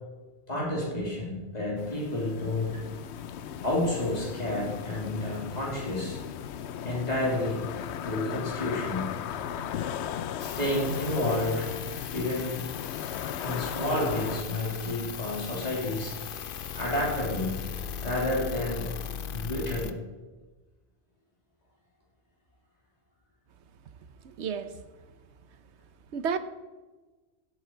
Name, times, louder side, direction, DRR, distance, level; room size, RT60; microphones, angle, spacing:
voice 1, 0.5-2.8 3.6-6.2 6.8-7.6 8.0-9.1 10.4-11.7 12.1-12.6 13.4-16.1 16.7-17.6 18.0-18.9 19.3-19.9, left 1 dB, 35° left, -4 dB, 3.3 m, -30 dB
sound 1, 1.8-14.4, left 9 dB, 85° left, 0.9 m, -36 dB
sound 2, 10.4-19.9, left 7 dB, 60° left, 0.8 m, -38 dB
voice 2, 24.2-25.0 25.6-25.7 26.1-26.4, right 6 dB, 90° right, 11 dB, 1.1 m, -32 dB
16.5 x 8.2 x 4.5 m, 1.3 s
omnidirectional pair, 1.1 m